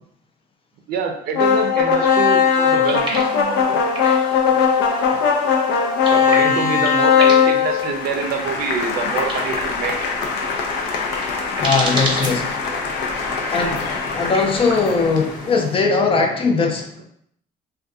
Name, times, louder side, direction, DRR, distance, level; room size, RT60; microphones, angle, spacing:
voice 1, 0.9-3.8 6.0-10.0 13.0-13.1, right 5 dB, 65° right, 4 dB, 0.5 m, -25 dB
sound 1, 1.3-15.5, left 7 dB, 85° left, 0.5 m, -20 dB
sound 2, 2.8-15.8, right 1 dB, 30° right, 0.7 m, -33 dB
voice 2, 11.6-12.8 13.5-17.0, left 4 dB, 35° left, 3 dB, 0.4 m, -20 dB
2.6 x 2.2 x 2.3 m, 0.68 s
cardioid pair, 110°, 17 cm